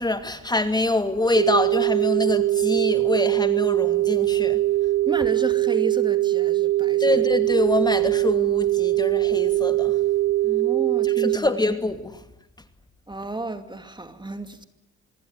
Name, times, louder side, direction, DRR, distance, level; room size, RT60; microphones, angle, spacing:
voice 1, 0.0-4.6 7.0-10.0 11.0-12.2, left 2 dB, 15° left, 2.6 m, -25 dB
sound 1, 1.4-11.4, right 16 dB, 75° right, 2.5 m, -22 dB
voice 2, 5.1-7.0 10.4-11.5 13.1-14.6, right 2 dB, 15° right, 2.5 m, -32 dB
26.0 x 23.0 x 9.6 m
cardioid pair, 90°, 30 cm